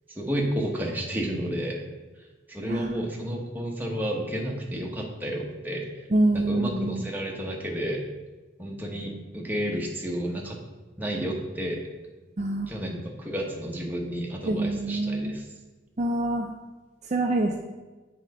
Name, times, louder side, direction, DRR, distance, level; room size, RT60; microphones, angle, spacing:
voice 1, 0.1-1.8 2.5-6.0 6.3-8.0 8.6-10.6 11.0-11.8 12.7-15.5, equal, 10° right, -1 dB, 1.0 m, -31 dB
voice 2, 2.6-2.9 6.1-7.0 12.4-12.7 14.5-15.4 16.0-16.5 17.1-17.6, right 2 dB, 40° right, 2 dB, 0.5 m, -26 dB
7.3 x 3.8 x 5.3 m, 1.2 s
head